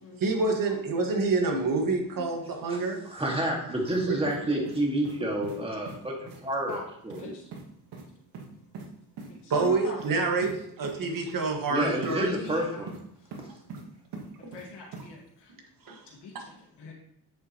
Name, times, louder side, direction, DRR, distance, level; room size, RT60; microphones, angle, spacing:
voice 1, 0.2-3.0 4.1-4.2 9.5-10.5 10.8-12.3 14.4-14.5 15.8-16.0, right 3 dB, 55° right, 2 dB, 1.7 m, -27 dB
voice 2, 3.1-7.3 11.7-13.0, right 1 dB, 15° right, -1 dB, 1.9 m, -29 dB
sound 1, 3.9-4.0 4.3-5.2 5.4-5.6 5.9-6.0 6.3-6.4 6.7-6.8 7.1-7.2 7.5-7.6 7.9-8.0 8.3-8.9 9.2-9.3 9.6-9.7 10.0-10.1 10.4-10.5 10.8-10.9 12.0-12.1 12.5-13.0 13.3-13.8 14.1-14.7 14.9-15.1, right 4 dB, 85° right, 1.6 m, -42 dB
voice 3, 9.3-10.5 11.8-11.9 12.3-12.9 13.2-13.3 14.5-15.5 16.1-16.9, left 4 dB, 85° left, -2 dB, 2.0 m, -43 dB
8.0 x 6.8 x 3.0 m, 0.72 s
cardioid pair, 120°, 39 cm